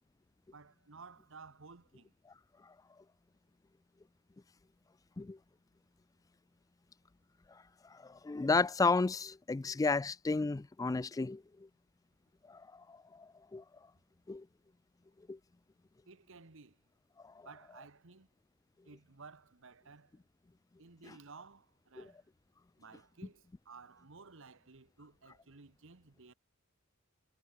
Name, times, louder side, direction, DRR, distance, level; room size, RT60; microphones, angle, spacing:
voice 1, 0.5-2.1 16.0-16.8 17.4-18.3 18.8-20.1 20.8-22.3 22.8-26.3, right 4 dB, 65° right, 1.4 m, -55 dB
voice 2, 8.0-11.4 12.5-12.6 12.9-13.0 13.5-13.6 14.3-14.4 15.3-15.4 22.0-22.1, left 3 dB, 15° left, 0.3 m, -32 dB
head